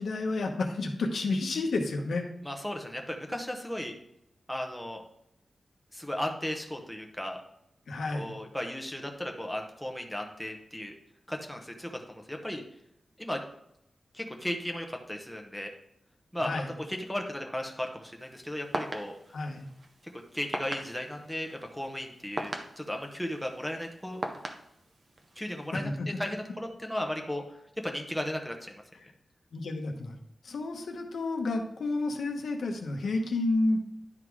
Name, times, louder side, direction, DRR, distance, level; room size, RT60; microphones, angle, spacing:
voice 1, 0.0-2.2 7.9-8.3 16.4-16.7 19.3-19.6 25.7-26.1 29.5-30.2 30.4-33.8, left 2 dB, 90° left, 3 dB, 1.0 m, -30 dB
voice 2, 2.4-4.0 4.5-5.0 5.9-7.4 8.1-10.9 11.3-12.6 13.2-13.4 14.1-15.7 16.3-16.6 16.9-19.2 20.3-24.2 25.4-25.9 26.2-27.4 27.8-28.8, left 1 dB, ahead, 2 dB, 0.9 m, -35 dB
sound 1, 18.2-25.7, right 2 dB, 40° right, 0.8 m, -41 dB
11.0 x 3.8 x 4.7 m, 0.77 s
wide cardioid pair, 160°, 0 cm